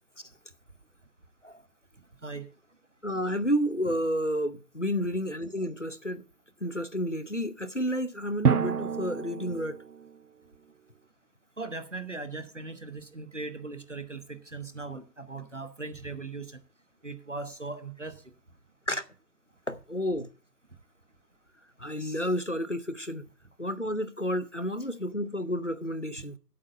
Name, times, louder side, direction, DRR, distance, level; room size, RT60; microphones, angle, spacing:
voice 1, 3.0-6.2 6.6-9.8 18.9-19.0 19.7-20.3 21.8-23.2 23.6-26.4, equal, 50° left, 0.6 m, -30 dB
Drum, 5.2-5.3 8.4-10.2, right 7 dB, 70° right, 0.6 m, -28 dB
voice 2, 11.6-16.5 17.0-18.1, right 3 dB, 45° right, 1.0 m, -39 dB
8.6 x 8.0 x 5.4 m
figure-of-eight pair, 175°, 49 cm